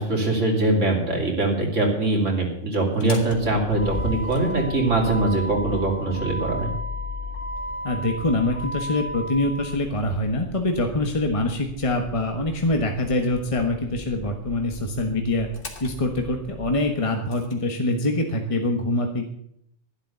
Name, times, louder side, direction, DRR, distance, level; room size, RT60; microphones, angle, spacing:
voice 1, 0.0-6.7, right 2 dB, 80° right, 1 dB, 3.3 m, -22 dB
Motor vehicle (road), 2.8-17.5, left 1 dB, 45° left, 1.9 m, -35 dB
voice 2, 7.8-15.5 15.8-19.3, left 2 dB, 25° left, 3 dB, 1.4 m, -24 dB
11.5 x 11.5 x 6.8 m, 0.73 s
omnidirectional pair, 1.3 m